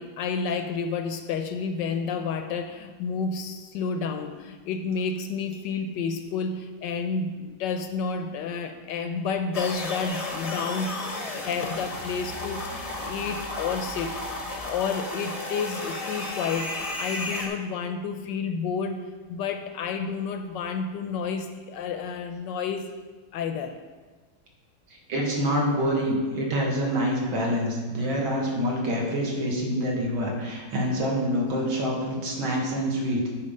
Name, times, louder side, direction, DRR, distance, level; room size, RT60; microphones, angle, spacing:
voice 1, 0.0-14.1 14.5-16.7 17.0-22.9 23.3-23.8, left 5 dB, 75° left, 7 dB, 1.1 m, -30 dB
sound 1, 9.5-17.5, left 2 dB, 40° left, 0.5 m, -33 dB
voice 2, 25.1-33.3, equal, 75° right, -2 dB, 2.4 m, -26 dB
9.7 x 4.5 x 5.4 m, 1.4 s
omnidirectional pair, 2.3 m